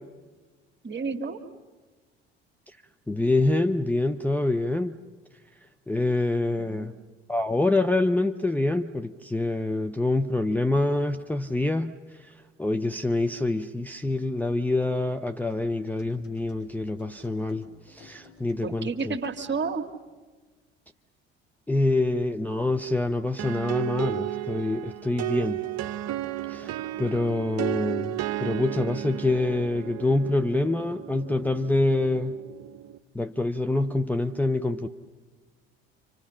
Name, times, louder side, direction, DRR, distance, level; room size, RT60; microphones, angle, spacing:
voice 1, 0.8-1.4 6.6-6.9 18.6-19.8, right 4 dB, 35° right, 6 dB, 2.1 m, -31 dB
voice 2, 3.1-5.0 5.9-6.9 7.3-19.2 21.7-25.6 26.5-32.4 33.1-34.9, left 2 dB, 5° left, 5 dB, 0.7 m, -26 dB
sound 1, 15.5-19.8, left 3 dB, 60° left, 6.6 m, -53 dB
sound 2, 23.4-33.0, right 14 dB, 55° right, 0.8 m, -33 dB
30.0 x 25.5 x 5.8 m, 1.3 s
figure-of-eight pair, 55°, 32 cm